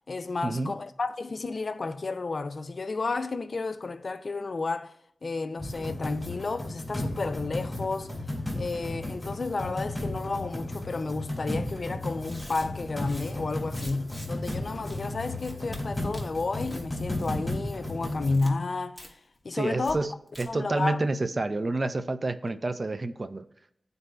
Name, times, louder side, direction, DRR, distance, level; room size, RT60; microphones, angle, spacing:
voice 1, 0.1-5.0 5.2-8.1 8.6-19.2 19.4-20.0 20.5-21.0, left 3 dB, 60° left, 0.3 m, -31 dB
sound 1, 5.6-18.4, left 1 dB, 10° left, 2.0 m, -34 dB
Tearing, 11.4-11.6 12.1-14.6 14.9-15.0 15.4-15.8 16.1-16.9 17.1-17.5 17.8-18.5 19.0-19.1 19.4-19.5 19.8-19.9 20.3-20.4, equal, 5° right, 1.1 m, -45 dB
voice 2, 19.5-23.5, right 2 dB, 45° right, 0.4 m, -29 dB
11.5 x 4.0 x 2.2 m
wide cardioid pair, 95°, 0 cm